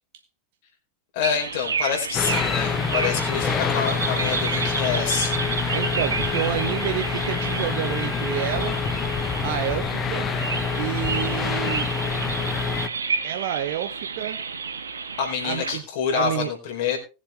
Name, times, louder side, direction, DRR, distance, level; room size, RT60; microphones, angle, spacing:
voice 1, 1.1-5.4 15.2-17.0, left 7 dB, 55° left, 1 dB, 4.5 m, -27 dB
sound 1, 1.2-15.8, right 5 dB, 75° right, 1.4 m, -31 dB
sound 2, 2.1-12.9, left 5 dB, 25° left, 1.2 m, -26 dB
voice 2, 5.7-8.8 9.4-10.3 10.8-11.9 13.2-14.4 15.4-15.9 16.1-16.5, right 12 dB, 55° right, 7 dB, 1.0 m, -29 dB
20.0 x 7.7 x 3.3 m, 0.30 s
figure-of-eight pair, 85°, 0 cm